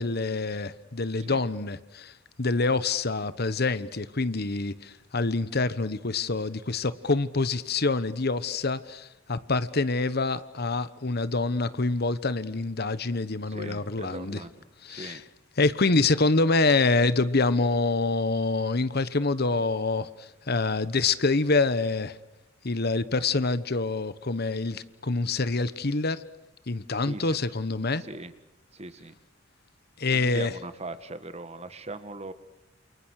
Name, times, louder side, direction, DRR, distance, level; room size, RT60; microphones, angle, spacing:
voice 1, 0.0-2.1 2.4-14.4 14.8-15.2 15.6-22.2 22.6-26.2 26.7-28.0 30.0-30.5, left 3 dB, 55° left, 1.2 m, -26 dB
voice 2, 13.5-14.5 14.9-15.2 27.0-27.4 28.0-28.3 28.7-29.1 30.1-32.3, right 2 dB, 35° right, 1.8 m, -40 dB
29.0 x 28.5 x 6.6 m
head